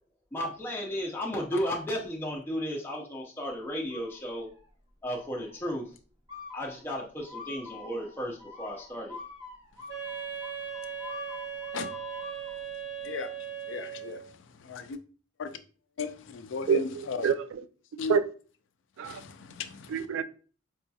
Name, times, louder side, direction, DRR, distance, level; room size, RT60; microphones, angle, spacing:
voice 1, 0.3-4.5 5.0-5.9 6.5-9.2, equal, 10° left, 0.5 m, -34 dB
sound 1, 3.9-4.7 5.0-5.6 6.3-12.6, left 3 dB, 20° right, 0.9 m, -46 dB
Wind instrument woodwind instrument, 9.9-14.3, right 8 dB, 60° right, 0.7 m, -38 dB
voice 2, 13.7-14.2 14.7-15.0 15.4-15.5 16.0-17.3 18.0-18.2 19.1-20.0, left 5 dB, 70° left, 0.4 m, -35 dB
voice 3, 16.7-17.6 18.1-18.3 19.0-19.2 19.9-20.2, right 7 dB, 90° right, 0.4 m, -27 dB
4.7 x 2.7 x 2.2 m
head